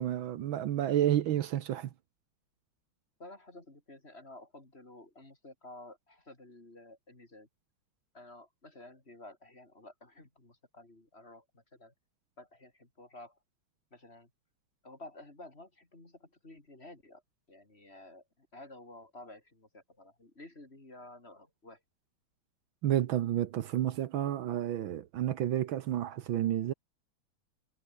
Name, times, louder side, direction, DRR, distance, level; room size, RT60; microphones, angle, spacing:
voice 1, 0.0-1.9 22.8-26.7, right 12 dB, 70° right, 1.6 m, -30 dB
voice 2, 3.2-7.5 8.1-11.9 12.4-13.4 13.9-14.3 14.8-17.2 17.5-21.8, left 2 dB, 30° left, 4.4 m, -52 dB
omnidirectional pair, 2.3 m